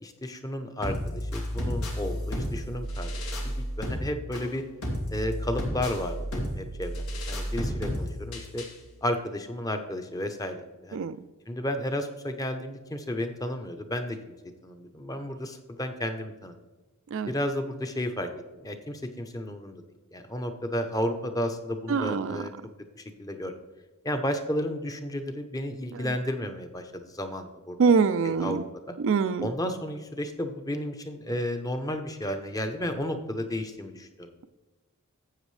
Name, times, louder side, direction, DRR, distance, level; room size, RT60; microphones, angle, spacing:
voice 1, 0.0-3.1 3.4-4.6 5.1-8.6 9.0-11.0 11.5-14.3 14.6-16.5 17.3-18.3 18.6-19.8 20.1-22.5 23.0-23.5 24.0-27.8 28.2-29.0 29.4-34.3, left 1 dB, 15° left, 7 dB, 0.7 m, -32 dB
sound 1, 0.8-8.8, equal, 85° left, 2.2 m, -32 dB
voice 2, 21.9-22.3 27.8-28.6 29.0-29.5, right 5 dB, 60° right, 12 dB, 0.4 m, -23 dB
12.5 x 8.0 x 3.3 m, 1.2 s
head